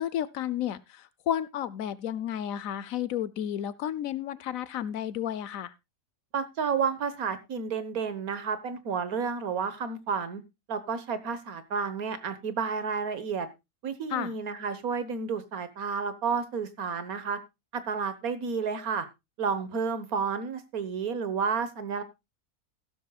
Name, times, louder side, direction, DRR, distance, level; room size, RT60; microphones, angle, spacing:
voice 1, 0.0-5.7 14.1-14.3, left 10 dB, 70° left, 18 dB, 1.1 m, -32 dB
voice 2, 6.3-10.4 10.7-13.5 13.8-17.4 17.7-19.1 19.4-22.0, right 6 dB, 70° right, 12 dB, 1.7 m, -31 dB
14.5 x 12.5 x 2.3 m, 0.23 s
omnidirectional pair, 1.6 m